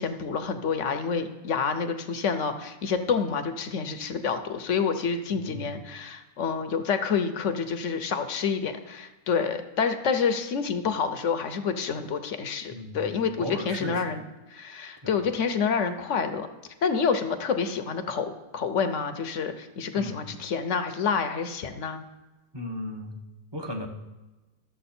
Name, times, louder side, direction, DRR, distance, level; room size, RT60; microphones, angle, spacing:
voice 1, 0.0-14.2 14.5-16.5 16.8-22.0, left 6 dB, 60° left, 8 dB, 1.0 m, -28 dB
voice 2, 5.3-5.7 12.7-13.0 13.4-14.2 15.0-15.1 20.0-20.2 22.5-23.2 23.5-23.9, left 1 dB, 20° right, 2 dB, 0.9 m, -36 dB
12.5 x 7.3 x 4.3 m, 1.1 s
omnidirectional pair, 1.6 m